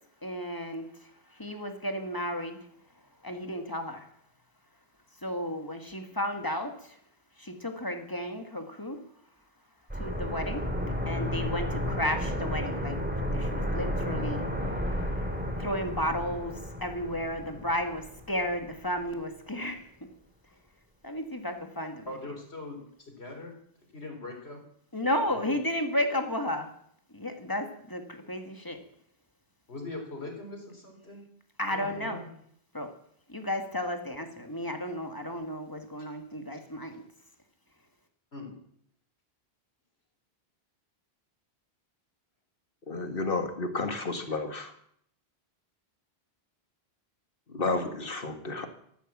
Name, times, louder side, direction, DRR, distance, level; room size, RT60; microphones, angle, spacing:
voice 1, 0.2-0.9 1.4-2.6 3.2-4.0 5.2-6.7 7.4-9.0 10.0-10.6 11.1-13.0 13.3-14.4 15.6-16.5 16.8-19.8 21.0-22.1 24.9-26.7 27.1-28.8 31.6-32.2 32.7-32.9 33.3-36.9, left 1 dB, 20° left, 5 dB, 1.8 m, -33 dB
sound 1, 9.9-18.6 18.9-19.0, left 1 dB, 10° right, 2.6 m, -32 dB
voice 2, 22.0-22.8 23.1-23.5 23.9-24.6 25.3-25.5 29.7-31.3 31.7-32.3 38.3-38.6, left 2 dB, 80° left, 3 dB, 3.9 m, -41 dB
voice 3, 42.9-44.7 47.5-48.7, left 3 dB, 60° left, 7 dB, 1.9 m, -31 dB
14.0 x 11.5 x 7.4 m, 0.70 s
omnidirectional pair, 1.1 m